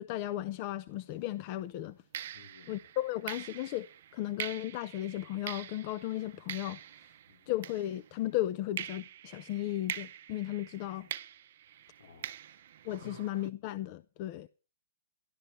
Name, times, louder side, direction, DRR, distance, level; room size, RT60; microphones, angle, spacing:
voice 1, 0.0-2.0 2.7-3.9 4.1-6.8 7.5-11.1 12.8-14.5, left 14 dB, 40° left, 0.6 m, -35 dB
sound 1, 1.0-1.2 2.1-8.3 8.8-13.5, right 11 dB, 55° right, 0.7 m, -44 dB
voice 2, 2.3-2.8 7.3-7.5 12.0-12.6 13.0-13.2, left 4 dB, 65° left, 2.0 m, -55 dB
12.5 x 12.0 x 5.4 m
hypercardioid pair, 130°, 0 cm